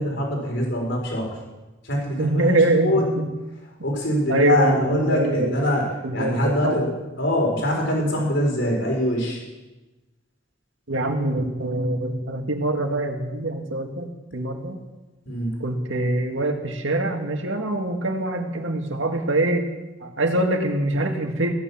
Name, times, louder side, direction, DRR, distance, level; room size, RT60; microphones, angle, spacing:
voice 1, 0.0-1.3 1.8-3.0 3.8-5.9 6.1-6.9 7.2-9.4 15.3-15.5, left 1 dB, 70° left, 0 dB, 4.6 m, -23 dB
voice 2, 2.2-3.3 4.3-5.5 6.0-6.8 10.9-14.8 15.6-19.6 20.0-21.5, right 1 dB, 75° right, 4 dB, 2.0 m, -24 dB
16.5 x 10.5 x 7.1 m, 1.1 s
head